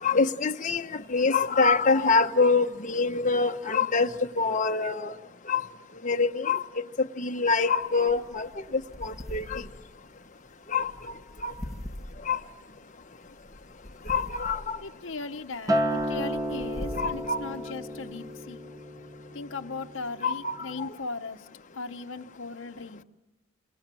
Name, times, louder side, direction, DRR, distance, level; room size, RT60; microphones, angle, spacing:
voice 1, 0.0-4.1 4.4-5.1 5.5-5.6 6.0-6.6 7.2-9.6 10.7-11.1 11.4-11.5 12.3-12.4 14.1-14.8 16.9-17.4 20.2-20.9, left 4 dB, 35° left, 6 dB, 1.1 m, -25 dB
sound 1, 7.8-18.3, left 1 dB, ahead, 2.1 m, -43 dB
voice 2, 14.8-18.7 19.3-21.5 21.7-23.0, left 3 dB, 65° left, 6 dB, 0.9 m, -38 dB
Acoustic guitar, 15.7-20.1 20.5-20.9, equal, 15° right, 1.0 m, -32 dB
27.0 x 26.5 x 7.6 m, 1.0 s
head